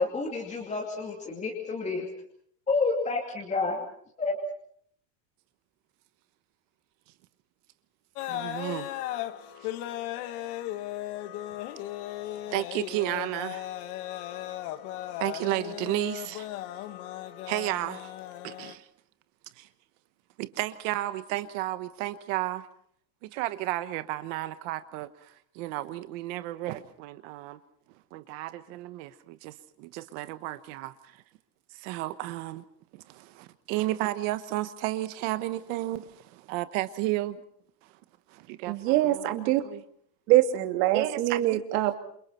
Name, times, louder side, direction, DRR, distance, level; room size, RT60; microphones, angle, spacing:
voice 1, 0.0-2.1 2.7-3.8 4.2-4.4, left 3 dB, 15° left, -1 dB, 2.7 m, -29 dB
sound 1, 8.1-18.7, left 13 dB, 60° left, 1.8 m, -36 dB
voice 2, 8.3-8.9 12.5-13.7 15.2-16.5 17.5-18.1 18.4-18.8 19.6-19.7 20.4-22.7 23.2-27.6 28.1-31.1 31.7-32.6 32.9-37.4 38.3-39.8 40.9-41.6, right 16 dB, 50° right, 12 dB, 1.2 m, -33 dB
voice 3, 38.7-39.6 40.3-42.0, right 14 dB, 70° right, 6 dB, 2.7 m, -24 dB
28.5 x 28.0 x 4.4 m, 0.64 s
supercardioid pair, 175°, 49 cm